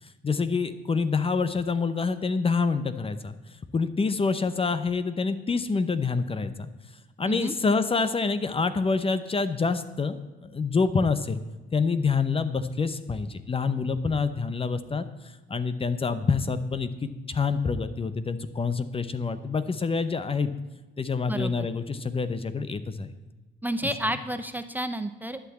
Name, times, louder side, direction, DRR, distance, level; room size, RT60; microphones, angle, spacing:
voice 1, 0.2-3.3 3.7-6.7 7.2-10.2 10.4-11.4 11.7-15.0 15.5-20.5 21.0-23.1 23.8-23.9, left 4 dB, 30° left, 12 dB, 0.8 m, -27 dB
voice 2, 21.3-21.7 23.6-25.4, right 1 dB, 10° right, 9 dB, 0.7 m, -30 dB
11.5 x 5.9 x 8.5 m, 1.2 s
cardioid pair, 90°, 20 cm